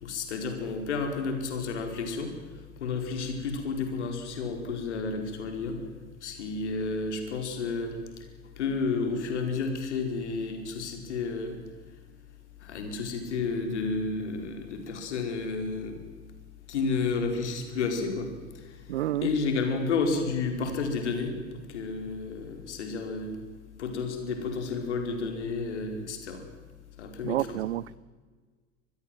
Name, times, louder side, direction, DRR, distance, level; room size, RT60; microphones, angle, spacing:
voice 1, 0.0-2.3 2.8-5.8 6.2-8.0 8.6-11.6 12.6-16.0 16.7-18.3 19.2-23.4 23.8-26.4 27.0-27.6, left 4 dB, 70° left, 5 dB, 4.7 m, -31 dB
voice 2, 18.9-19.3 27.2-28.0, right 14 dB, 65° right, 25 dB, 0.7 m, -29 dB
25.0 x 20.5 x 7.7 m, 1.5 s
figure-of-eight pair, 80°, 36 cm